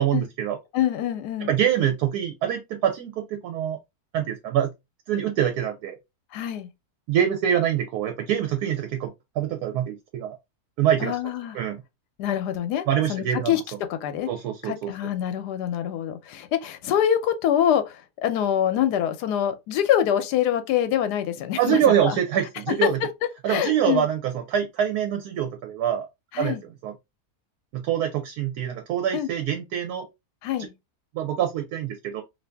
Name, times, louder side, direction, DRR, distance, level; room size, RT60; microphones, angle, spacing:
voice 1, 0.0-0.6 1.5-3.8 4.1-4.7 5.1-6.0 7.1-10.4 10.8-11.1 11.5-11.8 12.9-13.6 14.3-14.9 21.6-23.0 23.4-26.1 26.4-26.5 26.8-26.9 27.7-30.1 31.1-32.2, right 10 dB, 75° right, 1.1 m, -25 dB
voice 2, 0.7-1.5 6.3-6.7 11.0-11.6 12.2-14.3 14.6-22.2 23.5-24.1 26.3-26.6 29.1-29.3 30.4-30.7, left 10 dB, 85° left, 1.2 m, -25 dB
2.7 x 2.6 x 3.3 m
omnidirectional pair, 1.7 m